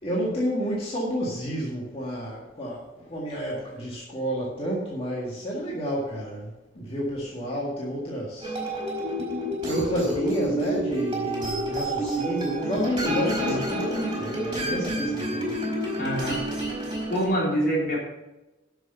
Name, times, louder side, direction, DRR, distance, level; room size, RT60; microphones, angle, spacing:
voice 1, 0.0-8.6 8.9-15.6, equal, 30° left, -4 dB, 1.8 m, -30 dB
sound 1, 8.4-17.3, right 1 dB, 25° right, 4.1 m, -29 dB
voice 2, 13.0-13.6 16.0-16.4 17.1-18.0, equal, 50° left, -3 dB, 3.3 m, -26 dB
11.0 x 6.6 x 5.5 m, 1.0 s
head